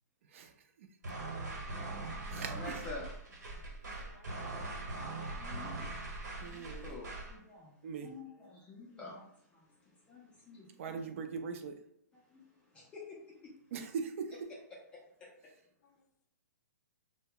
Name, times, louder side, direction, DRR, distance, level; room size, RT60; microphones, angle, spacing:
sound 1, 1.0-7.4, right 2 dB, 75° right, 1.0 m, -41 dB
voice 1, 1.5-3.1 3.4-3.6 5.2-11.0 12.1-13.5 14.9-15.3, left 3 dB, 10° left, -4 dB, 0.4 m, -50 dB
voice 2, 3.9-5.7 6.1-6.2 8.3-8.6 15.8-16.1, left 5 dB, 80° left, 6 dB, 0.4 m, -65 dB
voice 3, 6.4-6.9 7.8-8.1 10.8-11.8 13.7-14.5, right 5 dB, 45° right, 6 dB, 0.4 m, -40 dB
2.1 x 2.1 x 3.6 m, 0.73 s
hypercardioid pair, 150°, 9 cm